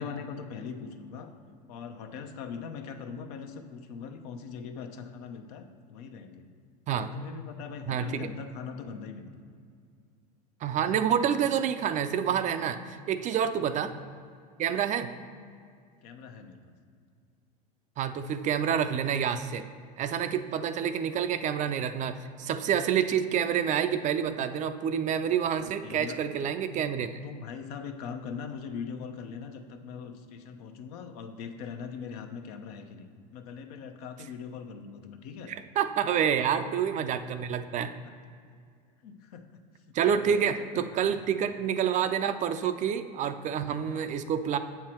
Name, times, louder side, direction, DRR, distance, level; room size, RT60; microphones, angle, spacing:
voice 1, 0.0-1.3 1.7-6.5 6.9-9.3 13.6-13.8 16.0-16.7 25.6-26.2 27.2-35.5 36.3-36.4 39.0-39.5 39.9-40.4 40.7-41.2 43.7-44.1, left 6 dB, 70° left, 6 dB, 0.8 m, -41 dB
voice 2, 7.9-8.3 10.6-13.9 14.6-15.1 18.0-19.6 20.0-27.2 35.5-37.9 39.9-44.6, right 8 dB, 35° right, 10 dB, 0.4 m, -28 dB
7.6 x 5.7 x 4.5 m, 2.2 s
hypercardioid pair, 100°, 21 cm